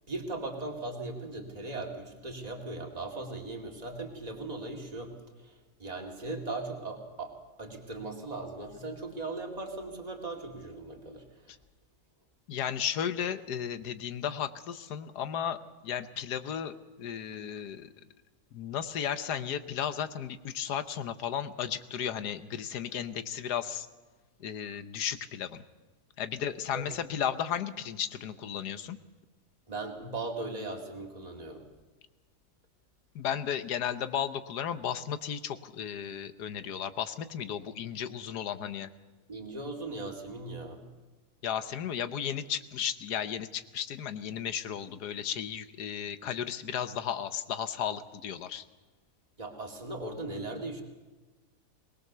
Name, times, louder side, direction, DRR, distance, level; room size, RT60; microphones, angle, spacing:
voice 1, 0.1-5.1 5.4-5.5 5.8-7.3 7.6-11.2 26.7-26.9 29.7-31.6 39.3-40.9 49.4-50.8, right 2 dB, 25° right, 1 dB, 2.5 m, -38 dB
voice 2, 12.5-15.6 15.8-17.9 18.5-23.9 24.4-25.6 26.2-29.0 33.1-38.9 41.4-48.6, left 9 dB, 90° left, 12 dB, 1.5 m, -34 dB
21.5 x 19.5 x 6.8 m, 1.3 s
omnidirectional pair, 1.7 m